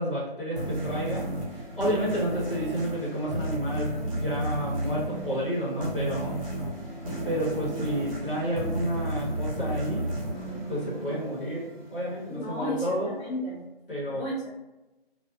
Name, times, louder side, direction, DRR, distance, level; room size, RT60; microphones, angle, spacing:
voice 1, 0.0-6.4 7.2-10.0 10.7-11.6 11.9-13.2 13.9-14.2, equal, 60° left, -7 dB, 1.2 m, -30 dB
sound 1, 0.6-11.7, right 1 dB, 35° right, 1.1 m, -33 dB
sound 2, 6.5-12.6, right 1 dB, 80° left, 1.0 m, -43 dB
voice 2, 12.3-13.7 14.1-14.3, left 1 dB, 30° left, -11 dB, 0.8 m, -34 dB
2.4 x 2.4 x 2.5 m, 1.0 s
figure-of-eight pair, 160°, 31 cm